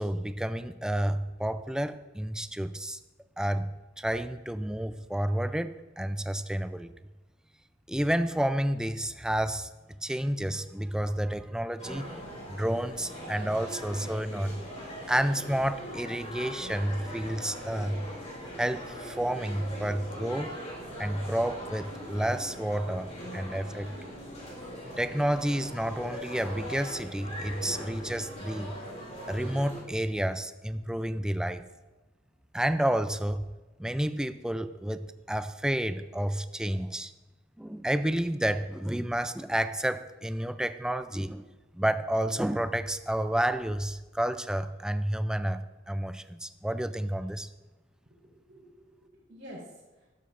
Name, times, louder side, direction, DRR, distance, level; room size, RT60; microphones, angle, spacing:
voice 1, 0.0-3.0 3.4-6.9 7.9-9.7 10.0-12.1 12.5-14.6 15.1-18.1 18.6-20.6 21.0-24.0 25.0-28.8 29.3-31.6 32.5-33.4 33.8-37.1 37.6-41.5 41.7-47.5, right 1 dB, 5° right, 11 dB, 0.4 m, -30 dB
sound 1, 11.8-29.8, equal, 35° left, 3.5 m, -41 dB
voice 2, 48.1-50.1, equal, 60° right, -10 dB, 3.5 m, -49 dB
13.5 x 12.5 x 2.5 m, 1.2 s
head